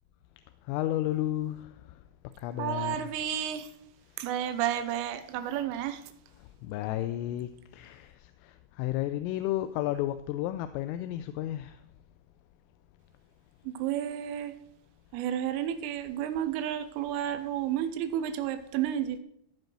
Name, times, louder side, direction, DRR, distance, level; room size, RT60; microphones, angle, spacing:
voice 1, 0.7-1.7 2.4-3.1 4.3-4.5 6.6-11.8, left 13 dB, 85° left, 3.2 m, -32 dB
voice 2, 2.6-3.7 4.2-6.0 13.7-14.5 15.1-19.2, right 10 dB, 85° right, 3.2 m, -31 dB
15.0 x 5.2 x 6.1 m
omnidirectional pair, 5.8 m